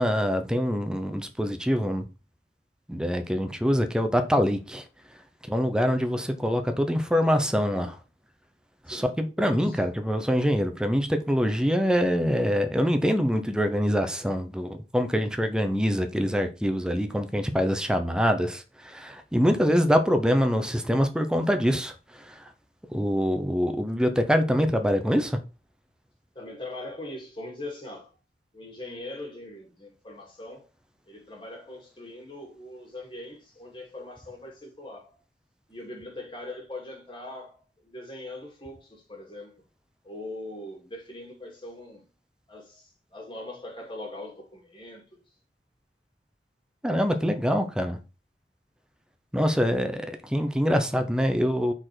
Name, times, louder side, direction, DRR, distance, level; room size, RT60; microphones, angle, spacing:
voice 1, 0.0-2.1 2.9-4.8 5.1-5.2 5.5-7.9 8.8-22.5 22.9-25.4 46.8-48.0 49.3-51.7, equal, 5° right, 0.7 m, -25 dB
voice 2, 9.4-9.8 26.3-28.2 28.5-30.7 31.1-35.2 35.7-39.6 40.0-42.1 42.5-45.2, left 1 dB, 30° left, 2.1 m, -41 dB
4.9 x 4.4 x 5.9 m
head